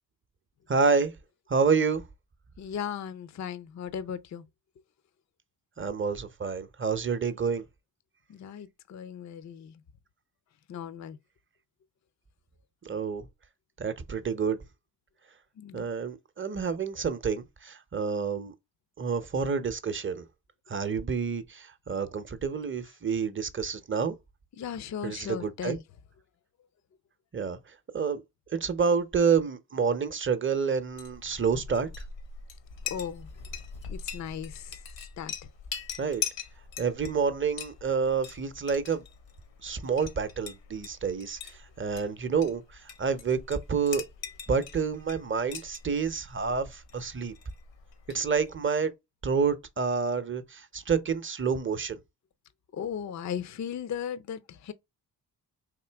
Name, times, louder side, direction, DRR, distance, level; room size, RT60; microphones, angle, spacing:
voice 1, 0.7-1.1 1.5-2.0 5.8-7.6 12.8-13.2 13.8-14.6 15.7-18.5 19.0-20.3 20.7-24.2 25.0-25.8 27.3-27.6 27.9-28.2 28.5-31.9 36.0-36.2 36.8-39.0 39.6-44.0 44.5-47.3 48.1-48.9 49.2-52.0, right 5 dB, 30° right, 0.7 m, -28 dB
voice 2, 2.6-4.4 8.3-9.7 10.7-11.2 15.6-15.9 24.6-25.8 32.9-33.3 33.9-34.8 35.2-35.3 52.7-54.7, left 8 dB, 40° left, 0.5 m, -37 dB
Chink clink, 30.8-48.6, left 7 dB, 80° left, 1.1 m, -42 dB
3.7 x 2.7 x 3.4 m
supercardioid pair, 45°, 43 cm